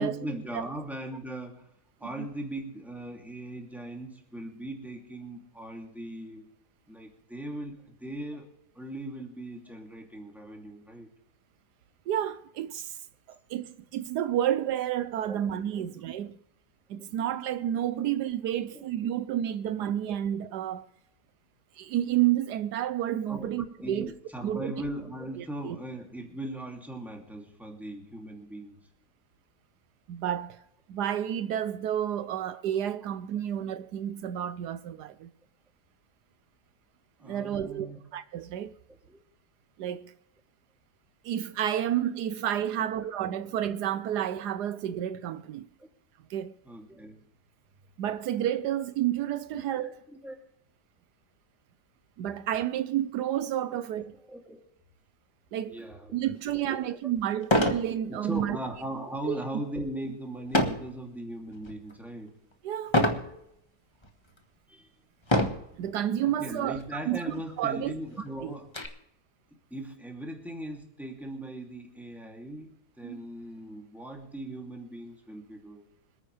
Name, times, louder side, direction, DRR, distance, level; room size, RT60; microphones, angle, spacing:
voice 1, 0.0-1.7 2.0-6.5 6.9-11.1 15.3-15.4 15.8-15.9 18.5-19.1 23.3-28.8 37.2-38.0 39.1-39.2 42.7-42.9 45.8-45.9 46.6-47.2 49.5-49.9 50.2-50.4 53.7-53.8 54.3-54.6 55.7-56.2 56.5-57.0 58.1-62.3 63.2-63.4 64.7-64.9 66.2-68.7 69.7-75.9, right 1 dB, ahead, 2.6 m, -39 dB
voice 2, 12.1-13.0 13.3-16.4 16.9-20.9 21.8-24.1 24.4-24.7 25.4-25.8 30.1-30.6 30.9-35.3 37.2-37.9 38.1-38.7 39.8-40.1 41.2-45.7 46.3-46.5 48.0-50.0 52.2-54.1 55.5-55.8 56.1-58.6 59.2-59.4 62.6-63.0 65.7-67.2 67.6-67.9 68.4-68.5 73.0-73.2, right 11 dB, 80° right, 1.3 m, -30 dB
sound 1, 56.5-56.6 57.4-57.9 58.3-58.6 60.5-60.9 61.5-61.9 62.9-63.3 64.0-64.1 65.2-65.7 66.7-66.9 67.2-67.3 67.7-68.9, left 1 dB, 20° left, 1.2 m, -25 dB
26.0 x 9.4 x 3.3 m
omnidirectional pair, 1.7 m